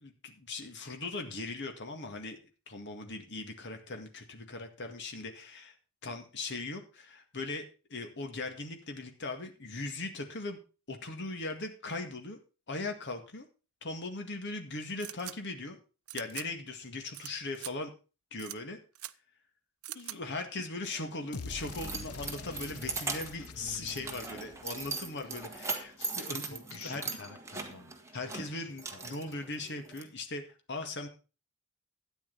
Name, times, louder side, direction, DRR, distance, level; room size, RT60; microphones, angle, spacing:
voice 1, 0.0-2.4 2.7-5.7 6.0-10.6 10.9-12.4 12.7-13.5 13.8-15.8 16.1-17.9 18.3-18.8 19.9-27.1 28.1-31.1, left 2 dB, 55° left, 5 dB, 2.0 m, -39 dB
sound 1, 15.0-15.3 16.1-16.5 17.1-17.3 17.5-17.7 18.4-18.6 18.9-19.1 19.8-20.2, right 16 dB, 80° right, 0.6 m, -42 dB
Keys jangling, 20.9-30.0, right 3 dB, 15° right, 1.6 m, -40 dB
sound 2, 21.3-25.6, left 4 dB, 85° left, 1.0 m, -45 dB
voice 2, 23.6-24.2 26.4-28.7, left 3 dB, 70° left, 5 dB, 1.8 m, -49 dB
12.5 x 9.5 x 4.0 m, 0.33 s
head